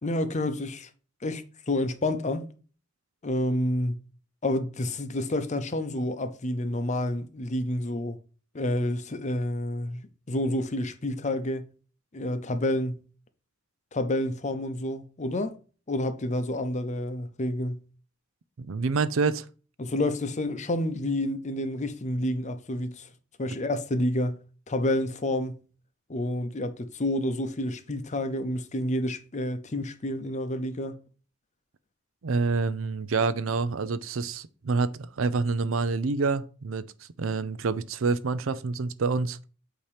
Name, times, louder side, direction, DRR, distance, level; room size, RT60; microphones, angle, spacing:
voice 1, 0.0-0.9 1.2-2.5 3.2-3.9 4.4-8.2 8.5-11.7 12.1-13.0 13.9-15.5 15.9-17.8 19.8-23.1 23.4-25.6 26.1-30.9, left 1 dB, 35° left, 0.7 m, -29 dB
voice 2, 18.6-19.5 32.2-39.4, right 4 dB, 75° right, 0.5 m, -27 dB
8.4 x 2.9 x 4.9 m
head